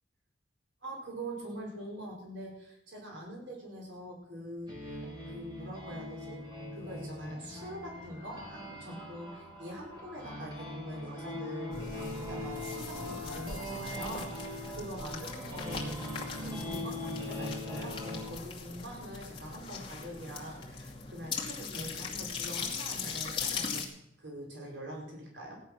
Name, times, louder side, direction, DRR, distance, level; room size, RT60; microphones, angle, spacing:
voice 1, 0.8-6.4 6.7-23.8 24.2-25.5, right 1 dB, 85° right, -1 dB, 4.9 m, -44 dB
sound 1, 4.7-18.3, left 1 dB, 20° right, 4.5 m, -41 dB
sound 2, 11.7-23.9, left 5 dB, 25° left, 2.4 m, -40 dB
16.0 x 10.5 x 6.3 m, 0.78 s
head